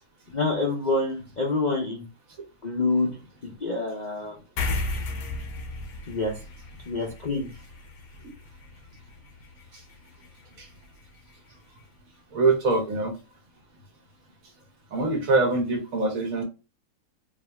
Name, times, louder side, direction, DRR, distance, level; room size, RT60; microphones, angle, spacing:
voice 1, 0.3-2.0 2.6-3.1 3.6-4.3 6.1-6.3 6.9-7.5, left 3 dB, 40° left, 0.6 m, -26 dB
sound 1, 4.6-11.4, left 2 dB, 80° left, 1.5 m, -36 dB
voice 2, 12.3-13.1 14.9-16.4, right 3 dB, 60° right, 1.5 m, -23 dB
4.7 x 2.8 x 3.4 m
omnidirectional pair, 1.7 m